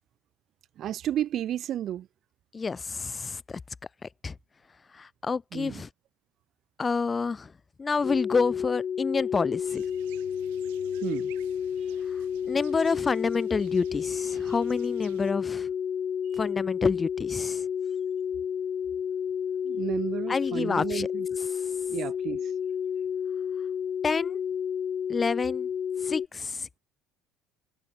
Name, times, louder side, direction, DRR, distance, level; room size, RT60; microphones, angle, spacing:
voice 1, 0.8-2.1 5.5-5.8 11.0-11.3 19.6-21.3 21.9-22.4, right 11 dB, 55° right, 1.7 m, -32 dB
voice 2, 2.5-3.6 4.2-4.3 4.9-5.9 6.8-7.5 7.8-9.8 12.5-15.7 16.4-17.6 20.3-21.1 24.0-24.4 25.1-25.7 26.0-26.8, left 4 dB, 25° left, 0.7 m, -28 dB
sound 1, 8.0-26.3, left 8 dB, 40° left, 1.2 m, -31 dB
sound 2, 9.7-15.3, right 24 dB, 85° right, 3.2 m, -52 dB
supercardioid pair, 85°, 0 cm